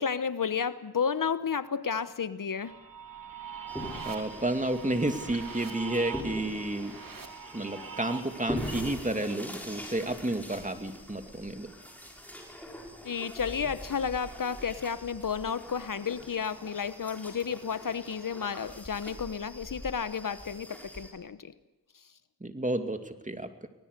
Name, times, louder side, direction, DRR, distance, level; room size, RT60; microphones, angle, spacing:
voice 1, 0.0-2.7 13.0-21.5, left 6 dB, 60° left, 13 dB, 1.0 m, -32 dB
sound 1, 2.6-8.8, right 6 dB, 65° right, 3.0 m, -42 dB
sound 2, 3.7-21.1, equal, 5° left, 6.6 m, -43 dB
voice 2, 4.1-7.0 7.5-11.7 22.4-23.7, right 1 dB, 20° right, 7 dB, 2.4 m, -31 dB
25.0 x 19.5 x 6.7 m, 1.0 s
cardioid pair, 50°, 37 cm